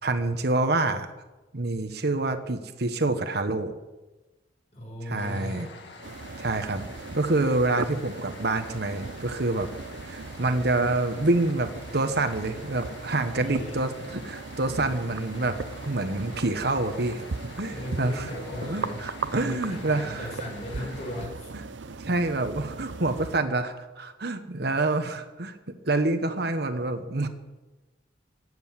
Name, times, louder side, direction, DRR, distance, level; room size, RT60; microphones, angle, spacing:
voice 1, 0.0-1.1 1.5-3.8 5.1-5.7 6.4-6.8 7.1-9.7 10.0-15.6 15.8-17.3 17.6-18.3 18.6-20.3 20.8-20.9 22.0-25.5 25.8-27.3, right 2 dB, 60° right, 8 dB, 1.2 m, -27 dB
voice 2, 4.7-5.8 13.4-13.7 17.7-19.1 19.4-21.5, left 1 dB, 40° left, -1 dB, 6.1 m, -37 dB
sound 1, 5.2-21.3, left 3 dB, 70° left, 2.1 m, -46 dB
sound 2, 6.0-23.4, right 4 dB, 85° right, 0.7 m, -38 dB
16.0 x 8.0 x 9.6 m, 1.1 s
head